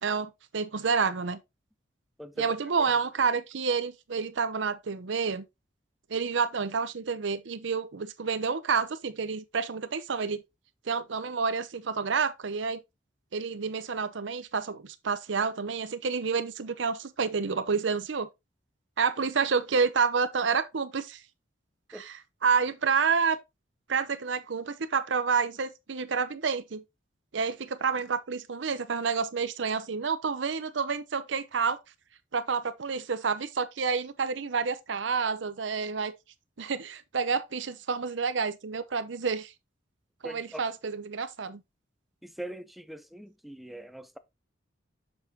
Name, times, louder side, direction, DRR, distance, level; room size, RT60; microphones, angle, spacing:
voice 1, 0.0-1.4 2.4-5.4 6.1-10.4 10.9-12.8 13.3-18.3 19.0-21.2 21.9-22.2 22.4-23.4 23.9-26.8 27.3-31.8 32.3-36.1 36.6-39.5 40.2-41.6, right 5 dB, 70° right, 0.7 m, -29 dB
voice 2, 2.2-2.6 2.9-3.0 21.9-22.1 40.2-40.6 42.2-44.2, right 1 dB, ahead, 0.5 m, -42 dB
7.0 x 6.1 x 2.7 m
head